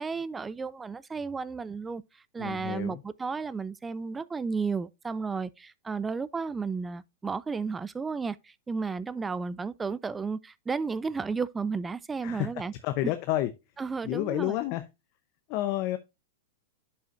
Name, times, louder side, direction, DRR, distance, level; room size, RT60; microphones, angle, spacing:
voice 1, 0.0-2.0 2.3-12.7 13.8-14.6, right 5 dB, 15° right, 0.3 m, -33 dB
voice 2, 2.4-3.0 12.2-12.5 12.8-13.5 14.0-14.8 15.5-16.0, left 15 dB, 45° left, 0.7 m, -29 dB
11.0 x 5.6 x 2.5 m
hypercardioid pair, 125°, 0 cm